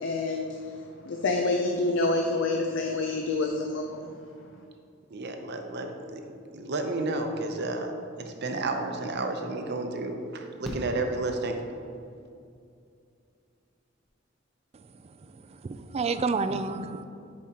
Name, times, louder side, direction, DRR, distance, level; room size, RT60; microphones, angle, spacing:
voice 1, 0.0-0.5 1.1-4.0, left 2 dB, 65° left, 2 dB, 0.5 m, -27 dB
voice 2, 5.1-6.3 6.5-11.6, right 2 dB, 60° right, 5 dB, 0.7 m, -31 dB
Fireworks, 10.6-12.0 13.7-13.8 14.0-14.1, equal, ahead, 0.8 m, -40 dB
voice 3, 14.7-17.0, right 4 dB, 30° right, 10 dB, 0.3 m, -31 dB
10.5 x 4.9 x 2.9 m, 2.4 s
head